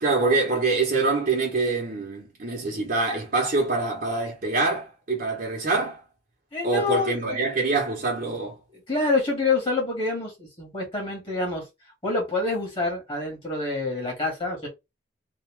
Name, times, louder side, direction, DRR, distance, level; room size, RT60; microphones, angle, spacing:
voice 1, 0.0-6.0 6.6-8.6, right 3 dB, 50° right, 1.1 m, -25 dB
voice 2, 6.5-7.4 8.9-11.7 12.0-14.7, left 3 dB, 30° left, 2.0 m, -27 dB
3.6 x 2.7 x 3.5 m
head